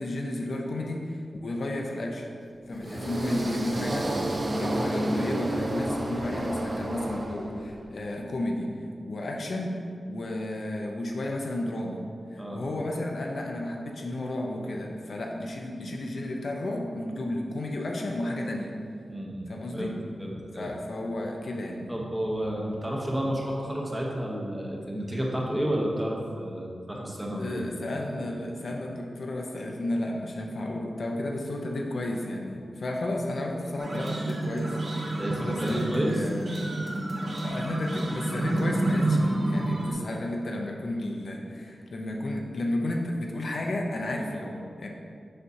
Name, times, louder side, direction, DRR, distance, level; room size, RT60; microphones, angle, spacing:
voice 1, 0.0-2.3 2.7-4.1 4.5-12.0 12.3-18.7 19.5-20.0 20.5-21.9 27.4-36.7 37.4-44.9, left 1 dB, 55° left, 0 dB, 0.6 m, -32 dB
sound 1, 2.7-7.9, right 1 dB, 30° right, 0.4 m, -30 dB
voice 2, 19.1-19.9 20.2-20.7 21.9-27.8 35.2-36.3, equal, 10° right, -2 dB, 0.8 m, -31 dB
sound 2, 33.8-39.9, right 1 dB, 50° right, 0.9 m, -29 dB
6.6 x 6.0 x 2.7 m, 2.3 s
wide cardioid pair, 155°, 0 cm